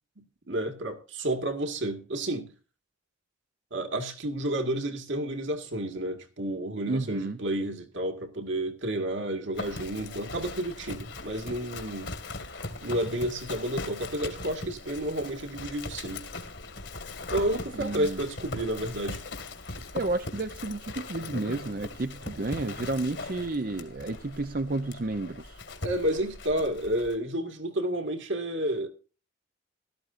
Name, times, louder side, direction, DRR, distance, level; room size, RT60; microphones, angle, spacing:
voice 1, 0.2-2.5 3.7-12.1 12.8-16.2 17.3-19.2 25.8-28.9, right 1 dB, 70° right, 2.1 m, -31 dB
voice 2, 6.9-7.4 17.7-18.2 19.9-25.6, right 2 dB, 45° right, 0.7 m, -31 dB
Livestock farm animals working animals, 9.5-27.1, left 2 dB, 60° left, 2.0 m, -40 dB
16.0 x 13.0 x 2.6 m
head